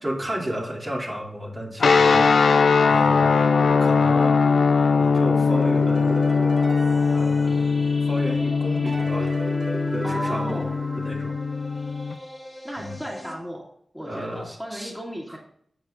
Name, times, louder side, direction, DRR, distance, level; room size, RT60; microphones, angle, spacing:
voice 1, 0.0-2.3 2.9-4.4 5.0-6.3 7.1-7.8 8.0-9.3 9.9-10.7 11.0-11.4 12.8-13.0 14.0-14.9 15.3-15.4, equal, 35° right, -4 dB, 2.7 m, -33 dB
sound 1, 1.8-12.1, left 5 dB, 80° left, 0.6 m, -20 dB
sound 2, 5.3-8.2 8.9-11.7, right 2 dB, 60° right, 2.1 m, -35 dB
sound 3, 6.8-13.4, left 1 dB, 15° left, 1.5 m, -40 dB
voice 2, 10.0-10.7 12.6-13.6 13.9-15.4, equal, 10° right, -3 dB, 2.2 m, -34 dB
13.0 x 7.7 x 2.6 m, 0.68 s
cardioid pair, 65°, 0 cm